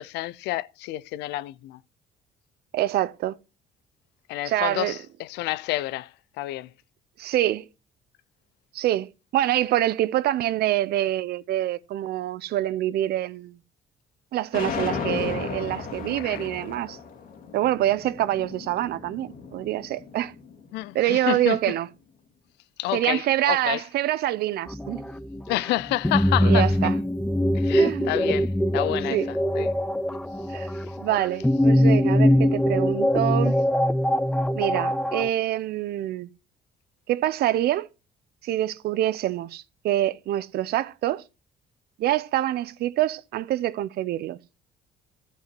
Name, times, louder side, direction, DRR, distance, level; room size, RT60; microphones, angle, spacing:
voice 1, 0.0-1.8 4.3-6.1 6.4-6.7 16.2-16.4 20.7-21.6 22.8-23.8 25.5-26.7 27.5-29.7, left 16 dB, 85° left, 0.5 m, -29 dB
voice 2, 2.7-3.4 4.4-5.0 7.2-7.6 8.7-13.5 14.3-17.0 17.5-20.3 20.9-21.9 22.9-25.0 26.4-27.0 27.8-28.2 29.1-29.3 30.5-30.7 31.0-33.5 34.6-36.3 37.1-37.9 38.4-41.2 42.0-44.4, right 13 dB, 70° right, 0.6 m, -26 dB
sound 1, 14.5-20.7, left 5 dB, 60° left, 2.4 m, -34 dB
sound 2, 24.7-35.3, left 1 dB, 5° left, 0.6 m, -22 dB
13.5 x 5.7 x 6.0 m
cardioid pair, 110°, 17 cm